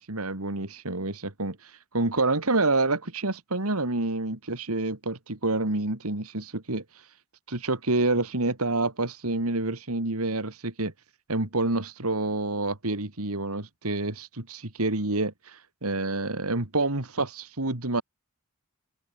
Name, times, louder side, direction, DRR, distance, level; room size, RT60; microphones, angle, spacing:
voice 1, 0.0-6.8 7.5-10.9 11.3-18.0, right 2 dB, 80° right, 2.8 m, -28 dB
head